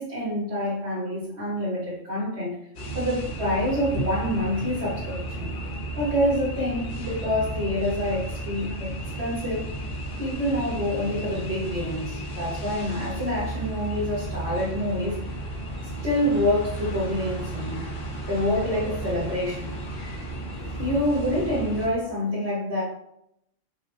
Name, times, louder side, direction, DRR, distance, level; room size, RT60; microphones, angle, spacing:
voice 1, 0.0-2.6 2.9-5.5 6.0-9.7 10.2-15.2 16.0-17.9 18.3-19.7 20.8-22.8, left 1 dB, 55° right, -10 dB, 1.7 m, -27 dB
sound 1, 2.7-21.9, right 1 dB, 50° left, 0.9 m, -33 dB
5.5 x 2.1 x 3.3 m, 0.77 s
omnidirectional pair, 1.3 m